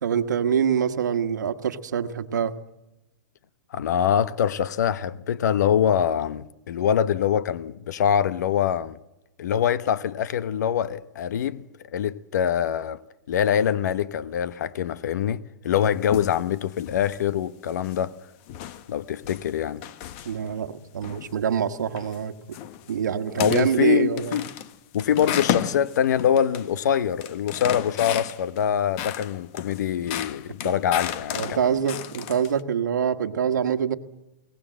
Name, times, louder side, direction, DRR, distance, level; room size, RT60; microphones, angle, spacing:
voice 1, 0.0-2.5 20.2-22.6 22.9-24.4 31.3-34.0, right 8 dB, 90° right, 1.3 m, -25 dB
voice 2, 3.7-9.0 9.4-11.6 11.9-13.0 13.3-18.1 18.9-19.8 23.4-24.5 24.9-31.8, left 9 dB, 75° left, 1.0 m, -24 dB
sound 1, 15.7-16.5 16.8-17.2 17.7-18.1 18.5-20.7 21.0-21.4 21.8-22.2 22.5-22.9 23.3-23.8 24.2-26.7 27.0-28.6 29.0-32.6, left 11 dB, 45° left, 1.1 m, -33 dB
23.0 x 18.5 x 7.6 m
hypercardioid pair, 140°, 9 cm